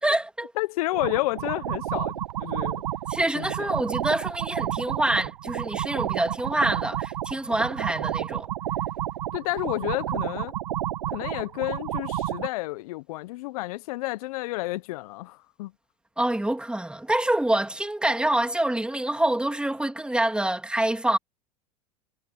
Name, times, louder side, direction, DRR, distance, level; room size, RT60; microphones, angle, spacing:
voice 1, 0.0-0.5 3.1-8.5 16.2-21.2, right 1 dB, 5° right, 3.3 m, -26 dB
voice 2, 0.6-2.8 3.3-3.7 9.3-10.5 11.1-15.7, left 20 dB, 65° left, 1.2 m, -30 dB
sound 1, 0.9-12.5, right 12 dB, 80° right, 1.5 m, -31 dB
hypercardioid pair, 95°, 20 cm